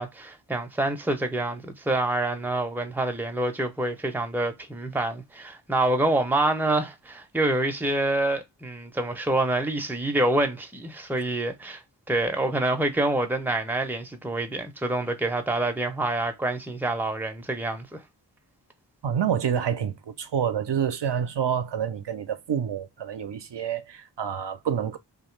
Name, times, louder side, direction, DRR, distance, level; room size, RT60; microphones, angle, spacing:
voice 1, 0.0-11.8 12.1-18.0, right 2 dB, 5° right, 0.5 m, -27 dB
voice 2, 19.0-25.0, right 8 dB, 75° right, 0.5 m, -28 dB
2.7 x 2.4 x 3.0 m
wide cardioid pair, 55°, 42 cm